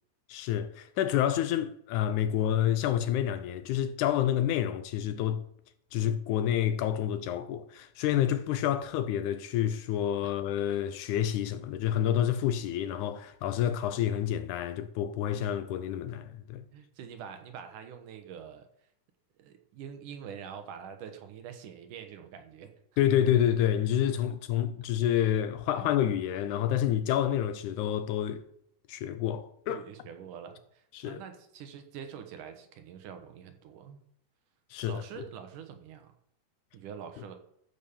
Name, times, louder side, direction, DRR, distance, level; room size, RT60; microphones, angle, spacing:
voice 1, 0.3-5.4 5.9-16.6 23.0-28.5 28.9-29.8 30.9-31.2 34.7-35.0, left 10 dB, 80° left, 1.9 m, -28 dB
voice 2, 16.7-18.7 19.4-22.8 25.8-25.9 29.7-34.0 34.8-36.1 36.7-37.4, right 8 dB, 75° right, 2.7 m, -45 dB
13.5 x 5.5 x 7.1 m
omnidirectional pair, 3.8 m